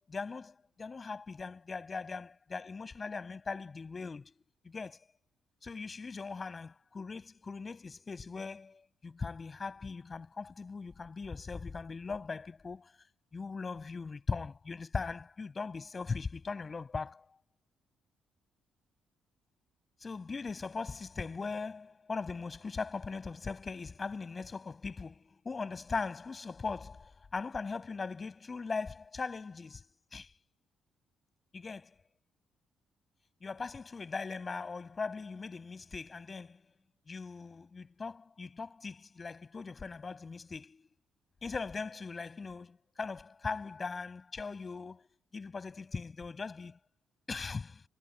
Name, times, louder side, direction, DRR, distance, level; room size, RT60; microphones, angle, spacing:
voice 1, 0.1-4.3 4.6-5.1 5.6-12.9 13.3-17.3 20.0-29.8 30.1-30.3 31.5-32.0 33.4-36.6 37.1-40.8 41.4-45.1 45.3-46.8 47.3-47.8, left 4 dB, 30° left, 6.9 m, -40 dB
cardioid pair, 125°, 0 cm